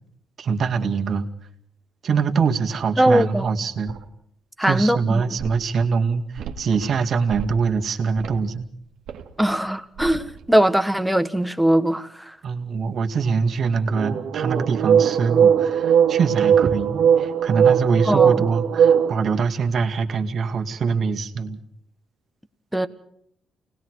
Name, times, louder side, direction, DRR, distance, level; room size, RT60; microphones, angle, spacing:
voice 1, 0.4-1.3 2.0-3.9 4.6-8.7 12.4-21.6, right 5 dB, 55° right, 2.2 m, -23 dB
voice 2, 3.0-3.5 4.6-5.4 9.4-12.4 18.0-18.4 22.7-22.9, right 1 dB, 5° right, 1.5 m, -20 dB
sound 1, 3.9-4.0 5.4-5.5 6.4-6.9 7.3-7.7 8.2-8.4 9.1-9.2 10.0-10.3 13.9-19.1, right 8 dB, 75° right, 2.1 m, -19 dB
29.0 x 20.0 x 4.8 m
cardioid pair, 90°, 0 cm